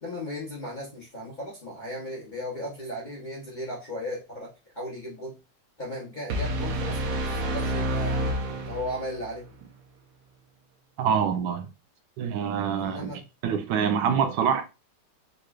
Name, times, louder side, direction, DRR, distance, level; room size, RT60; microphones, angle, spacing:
voice 1, 0.0-5.4 5.8-8.2 8.7-9.5 12.8-13.3, left 1 dB, 40° left, 0.7 m, -36 dB
sound 1, 6.3-9.3, right 1 dB, 65° right, 1.0 m, -28 dB
voice 2, 11.0-11.7 12.2-13.1 13.4-14.6, right 7 dB, 80° right, 1.3 m, -25 dB
3.8 x 3.0 x 2.3 m
omnidirectional pair, 1.9 m